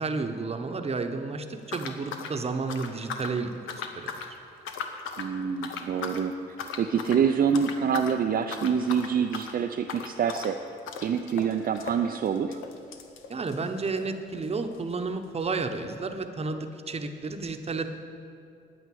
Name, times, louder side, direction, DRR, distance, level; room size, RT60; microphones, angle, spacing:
voice 1, 0.0-4.4 13.3-17.9, right 4 dB, 30° right, 7 dB, 1.0 m, -32 dB
sound 1, 1.7-3.4 3.7-4.3 4.6-5.3 5.6-6.2 6.6-7.2 7.5-8.2 8.4-14.1 14.4-14.5 14.7-14.8 15.5-15.6, left 6 dB, 85° left, 1.0 m, -38 dB
voice 2, 5.2-6.3 6.8-10.6 11.0-12.6, right 7 dB, 50° right, 4 dB, 0.5 m, -26 dB
9.7 x 9.4 x 7.7 m, 2.5 s
cardioid pair, 90°, 20 cm